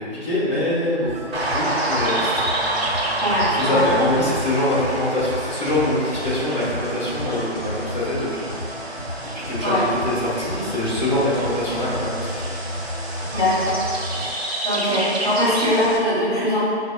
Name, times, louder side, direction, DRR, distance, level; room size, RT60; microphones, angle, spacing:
voice 1, 0.0-2.3 3.6-8.6 9.2-12.5, left 1 dB, 40° left, -11 dB, 1.2 m, -24 dB
sound 1, 1.1-14.3, left 1 dB, 85° left, 0.7 m, -33 dB
sound 2, 1.3-16.0, right 1 dB, 60° right, 0.6 m, -29 dB
voice 2, 3.2-3.9 9.6-9.9 13.3-13.9 14.2-14.4 14.6-16.6, left 1 dB, 5° right, -17 dB, 1.1 m, -21 dB
5.2 x 2.0 x 2.3 m, 2.3 s
figure-of-eight pair, 170°, 35 cm